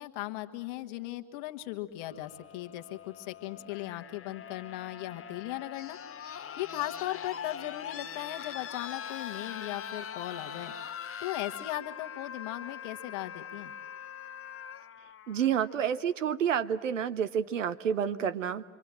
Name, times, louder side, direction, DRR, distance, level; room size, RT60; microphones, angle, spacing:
voice 1, 0.0-6.0 6.3-10.7 11.2-13.7, left 15 dB, 70° left, 7 dB, 1.4 m, -38 dB
sound 1, 2.0-16.0 17.2-17.3, left 8 dB, 35° left, 1.1 m, -42 dB
voice 2, 15.3-18.6, right 8 dB, 90° right, 13 dB, 0.8 m, -29 dB
26.5 x 24.5 x 7.6 m, 1.4 s
hypercardioid pair, 55°, 37 cm